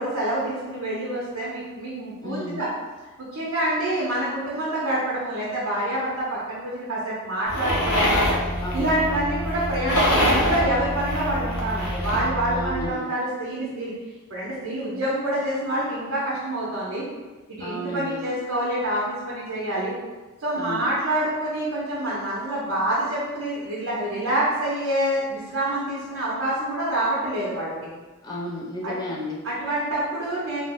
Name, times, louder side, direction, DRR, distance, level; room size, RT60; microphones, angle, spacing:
voice 1, 0.0-2.7 3.3-8.2 8.7-13.9 14.3-17.0 17.5-19.9 20.4-27.7 28.8-28.9 29.4-30.6, right 1 dB, 65° right, -8 dB, 0.7 m, -27 dB
voice 2, 2.2-2.7 8.6-9.0 12.5-13.1 17.6-18.2 20.6-20.9 28.2-29.4, left 1 dB, 20° left, -2 dB, 0.3 m, -33 dB
sound 1, 7.5-12.3, equal, 80° left, 0.6 m, -25 dB
sound 2, 7.7-12.9, equal, 25° right, 0.8 m, -31 dB
2.4 x 2.0 x 3.6 m, 1.2 s
head